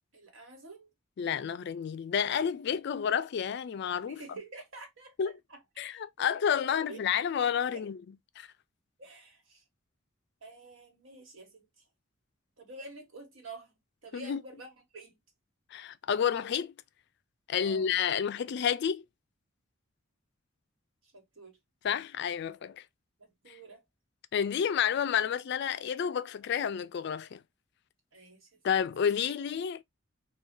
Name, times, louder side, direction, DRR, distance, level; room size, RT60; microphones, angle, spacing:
voice 1, 0.1-0.9 4.1-7.0 7.7-7.9 9.0-9.6 10.4-11.8 12.6-13.7 14.0-15.2 17.6-17.9 21.0-21.6 23.2-23.8 28.1-28.6, right 2 dB, 75° right, 1.3 m, -49 dB
voice 2, 1.2-4.2 5.2-5.3 5.8-8.0 8.4-8.5 14.1-14.4 15.7-16.7 17.5-19.0 21.8-22.8 24.3-27.4 28.6-29.8, left 8 dB, 55° left, 0.3 m, -30 dB
2.6 x 2.3 x 3.6 m
head